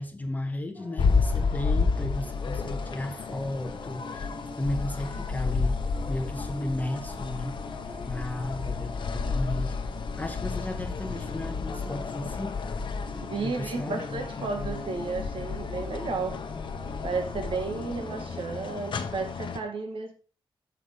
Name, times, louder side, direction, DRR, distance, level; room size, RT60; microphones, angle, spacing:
voice 1, 0.0-5.8 6.1-7.6 8.1-9.8 10.2-12.6 13.4-14.0, left 1 dB, 20° left, 0.9 m, -34 dB
sound 1, 0.7-18.8, left 1 dB, 20° right, 4.0 m, -46 dB
sound 2, 1.0-19.6, left 4 dB, 60° left, 0.8 m, -31 dB
voice 2, 13.3-16.4 17.0-20.1, right 4 dB, 75° right, 1.5 m, -33 dB
6.9 x 6.0 x 4.9 m
wide cardioid pair, 160°, 9 cm